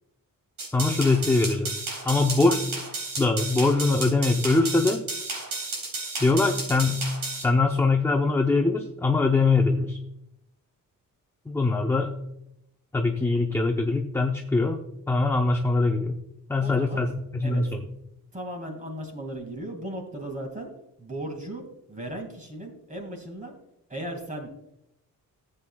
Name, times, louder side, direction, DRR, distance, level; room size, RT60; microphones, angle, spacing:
sound 1, 0.6-7.4, right 3 dB, 70° right, 3.7 m, -33 dB
voice 1, 0.7-1.8 2.0-2.6 3.2-5.0 6.2-7.0 7.4-10.0 11.5-12.1 12.9-14.8 15.1-16.2 16.5-17.8, left 3 dB, 10° left, 3 dB, 0.6 m, -22 dB
voice 2, 16.6-17.1 17.4-17.6 18.3-20.7 21.0-23.5 23.9-24.5, right 1 dB, 25° right, 2 dB, 2.2 m, -36 dB
15.5 x 7.8 x 2.3 m, 0.82 s
wide cardioid pair, 150°, 34 cm